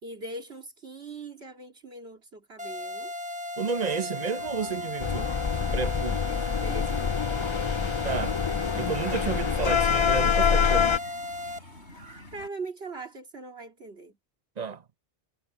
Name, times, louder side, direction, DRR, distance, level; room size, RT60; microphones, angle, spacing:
voice 1, 0.0-3.1 6.3-7.1 12.3-14.2, right 3 dB, 65° right, 2.8 m, -41 dB
sound 1, 2.6-11.6, left 1 dB, 5° right, 1.0 m, -36 dB
voice 2, 3.6-5.3 5.7-6.3 8.0-8.4 8.7-11.0 14.6-14.8, right 5 dB, 40° right, 0.9 m, -31 dB
sound 2, 4.4-12.5, left 1 dB, 80° left, 6.1 m, -46 dB
sound 3, 5.0-11.0, left 7 dB, 40° left, 0.4 m, -26 dB
omnidirectional pair, 1.1 m